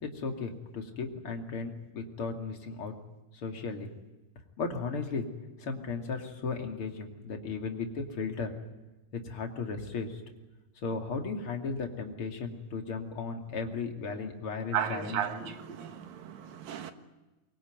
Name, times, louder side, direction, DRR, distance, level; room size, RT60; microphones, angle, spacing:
voice 1, 0.0-2.9 3.3-3.9 4.6-5.3 5.6-8.5 9.2-10.2 10.8-15.5, left 4 dB, 40° left, 3.0 m, -35 dB
voice 2, 14.7-16.9, right 9 dB, 70° right, 3.0 m, -34 dB
24.5 x 23.0 x 9.3 m
omnidirectional pair, 4.3 m